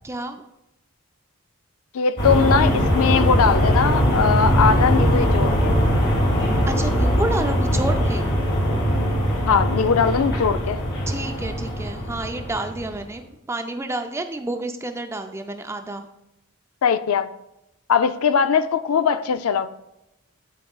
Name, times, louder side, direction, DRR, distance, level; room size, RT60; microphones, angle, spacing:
voice 1, 0.0-0.4 6.7-8.3 11.1-16.0, right 2 dB, 10° right, 0.4 m, -29 dB
voice 2, 1.9-5.8 9.5-10.8 16.8-17.3 17.9-19.7, left 6 dB, 80° left, 0.4 m, -20 dB
sound 1, 2.2-13.0, equal, 55° left, 1.8 m, -21 dB
12.5 x 4.8 x 2.3 m
head